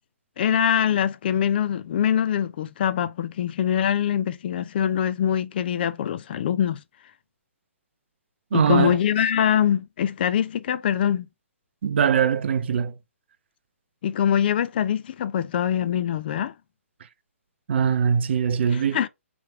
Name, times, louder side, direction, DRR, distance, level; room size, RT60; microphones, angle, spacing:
voice 1, 0.4-6.8 8.5-11.3 14.0-16.5 18.7-19.1, left 9 dB, 45° left, 0.4 m, -23 dB
voice 2, 8.5-9.0 11.8-12.9 17.7-19.1, right 7 dB, 50° right, 0.6 m, -22 dB
3.5 x 3.1 x 4.6 m
figure-of-eight pair, 130°, 8 cm